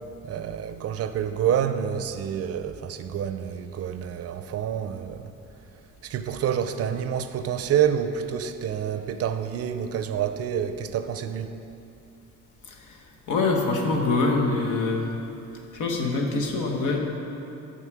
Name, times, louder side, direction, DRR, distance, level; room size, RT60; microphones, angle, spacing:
voice 1, 0.2-5.3 6.0-11.5, right 9 dB, 55° right, 9 dB, 0.4 m, -28 dB
voice 2, 12.7-13.0 13.3-15.2 15.7-17.0, left 3 dB, 80° left, 1 dB, 1.0 m, -25 dB
6.3 x 5.6 x 4.7 m, 2.8 s
cardioid pair, 90°, 30 cm